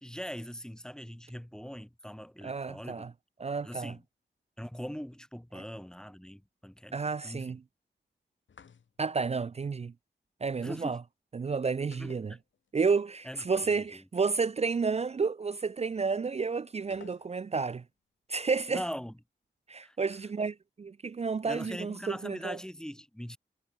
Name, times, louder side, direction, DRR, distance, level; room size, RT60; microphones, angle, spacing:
voice 1, 0.0-3.0 3.6-4.0 4.6-6.9 7.2-7.5 10.6-11.0 12.0-12.4 13.2-14.0 18.7-19.1 19.8-20.0 21.5-23.4, equal, 5° left, 1.0 m, -41 dB
voice 2, 2.4-3.1 3.4-3.9 5.5-5.6 6.9-7.6 9.0-9.9 10.4-11.0 11.3-12.3 12.7-17.8 18.3-18.8 19.7-22.6, right 5 dB, 35° right, 0.4 m, -31 dB
sound 1, 8.5-9.2 11.9-13.0 13.2-13.3 16.9-17.7, left 6 dB, 90° left, 4.9 m, -55 dB
cardioid pair, 60°, 19 cm